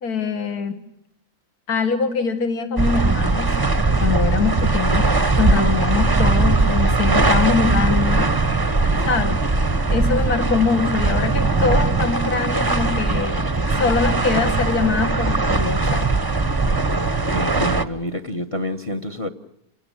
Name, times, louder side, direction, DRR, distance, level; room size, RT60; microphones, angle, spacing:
voice 1, 0.0-0.8 1.7-5.1 5.4-8.3 9.0-9.4 9.9-13.5 13.8-16.1, left 5 dB, 70° left, 5 dB, 2.3 m, -23 dB
sound 1, 2.8-17.8, right 3 dB, 20° right, 0.8 m, -20 dB
voice 2, 17.3-19.3, left 1 dB, 25° left, 10 dB, 1.0 m, -28 dB
29.0 x 17.0 x 9.0 m, 0.80 s
omnidirectional pair, 1.7 m